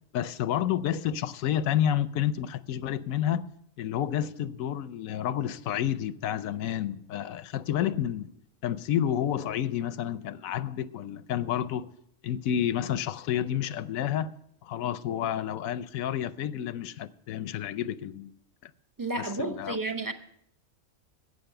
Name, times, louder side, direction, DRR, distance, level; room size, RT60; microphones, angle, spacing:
voice 1, 0.1-3.5 3.8-8.3 8.6-11.9 12.2-14.3 14.6-18.3 18.6-18.7 19.2-19.8, left 10 dB, 85° left, 1.0 m, -30 dB
voice 2, 19.0-20.1, right 2 dB, 20° right, 0.5 m, -31 dB
11.5 x 8.4 x 6.7 m
omnidirectional pair, 1.4 m